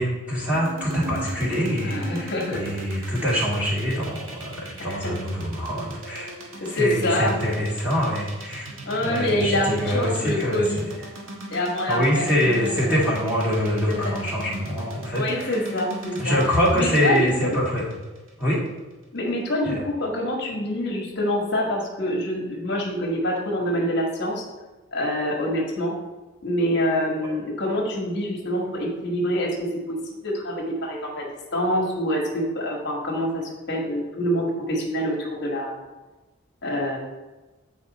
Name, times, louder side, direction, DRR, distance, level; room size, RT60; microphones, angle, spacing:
voice 1, 0.0-8.7 9.0-10.6 11.9-15.7 16.2-17.9 18.4-18.6 19.6-19.8, equal, 5° right, -6 dB, 1.9 m, -24 dB
sound 1, 0.5-18.7, right 2 dB, 80° right, 1.4 m, -39 dB
voice 2, 1.8-2.6 2.9-3.1 4.8-5.1 6.6-7.5 8.7-10.9 11.5-12.9 13.9-14.2 15.1-16.4 16.7-17.6 19.1-24.4 24.9-25.9 26.4-30.0 30.2-35.8 36.6-37.0, equal, 55° left, -1 dB, 1.5 m, -26 dB
8.7 x 4.6 x 4.1 m, 1.2 s
head